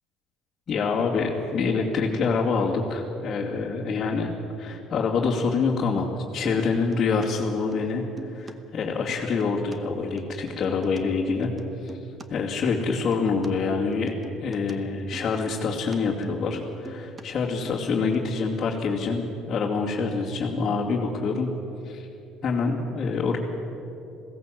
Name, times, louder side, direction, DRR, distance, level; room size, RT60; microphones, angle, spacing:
voice 1, 0.7-4.3 4.6-8.1 8.3-11.5 11.8-11.9 12.3-14.1 14.4-21.5 21.8-22.1 22.4-23.4, left 4 dB, 30° left, -7 dB, 2.5 m, -26 dB
sound 1, 6.4-7.3 7.5-8.5 8.8-11.0 11.3-13.5 13.7-17.2 17.5-18.2, right 4 dB, 20° right, 1.0 m, -43 dB
21.0 x 17.0 x 7.7 m, 2.8 s
cardioid pair, 150°, 0 cm